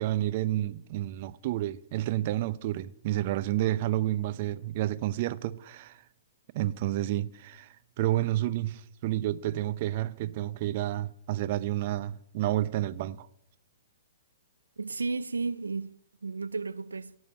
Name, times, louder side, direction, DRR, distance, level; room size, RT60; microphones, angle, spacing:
voice 1, 0.0-6.0 6.5-13.3, right 14 dB, 45° right, 0.7 m, -30 dB
voice 2, 14.8-16.0 16.2-17.2, right 4 dB, 85° right, 0.5 m, -33 dB
17.5 x 7.2 x 8.9 m
hypercardioid pair, 125°, 0 cm